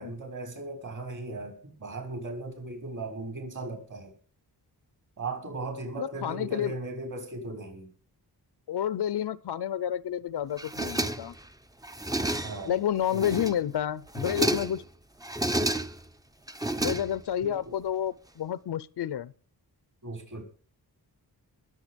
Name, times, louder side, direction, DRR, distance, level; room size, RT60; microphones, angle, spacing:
voice 1, 0.0-4.1 5.2-7.9 12.4-12.7 13.1-13.2 17.4-17.7 20.0-20.4, right 2 dB, 50° right, 6.5 m, -37 dB
voice 2, 6.0-6.7 8.7-11.3 12.7-14.8 16.8-19.3, left 10 dB, 75° left, 0.8 m, -30 dB
sound 1, 10.6-11.5 11.8-12.7 13.1-13.7 14.1-14.8 15.2-16.1 16.5-17.4, right 1 dB, 10° right, 0.7 m, -30 dB
21.0 x 8.0 x 5.3 m
wide cardioid pair, 110°, 40 cm